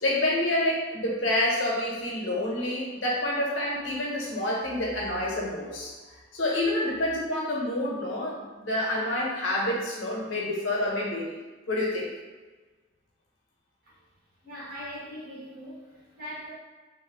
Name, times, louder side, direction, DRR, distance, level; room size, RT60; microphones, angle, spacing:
voice 1, 0.0-5.9 6.3-11.4 11.7-12.1, left 1 dB, 80° left, -3 dB, 0.8 m, -28 dB
voice 2, 14.4-16.5, equal, 50° right, -8 dB, 1.3 m, -41 dB
2.9 x 2.2 x 3.4 m, 1.3 s
head